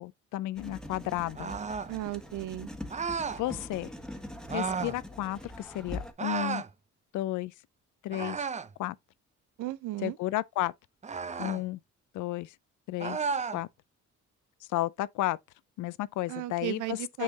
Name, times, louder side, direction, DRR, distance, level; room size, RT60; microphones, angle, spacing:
voice 1, 0.0-1.5 3.1-3.9 4.5-6.6 7.1-7.5 8.0-8.4 8.8-9.0 10.0-10.7 11.4-11.8 12.1-12.5 12.9-13.2 13.5-13.7 14.7-15.4 15.8-17.2, left 15 dB, 80° left, 0.5 m, -32 dB
Writing, 0.6-6.1, left 1 dB, ahead, 1.4 m, -43 dB
sound 1, 1.3-1.9 2.9-3.4 4.5-5.0 6.2-6.7 8.1-8.7 11.0-11.6 13.0-13.6, right 5 dB, 25° right, 0.5 m, -33 dB
voice 2, 1.9-2.7 9.6-10.2 16.3-17.2, right 16 dB, 85° right, 0.6 m, -35 dB
6.6 x 5.4 x 2.8 m
cardioid pair, 90°, 30 cm